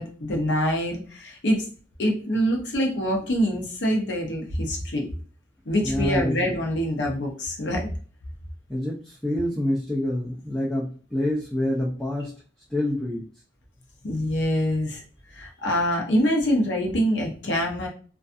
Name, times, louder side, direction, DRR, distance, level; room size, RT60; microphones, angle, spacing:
voice 1, 0.0-1.7 2.0-5.1 5.7-7.9 14.0-15.0 15.3-17.9, equal, 75° left, 0 dB, 0.7 m, -25 dB
voice 2, 5.8-6.4 8.7-12.3 12.7-13.2, left 1 dB, 5° left, -5 dB, 0.4 m, -27 dB
2.5 x 2.3 x 2.4 m, 0.40 s
head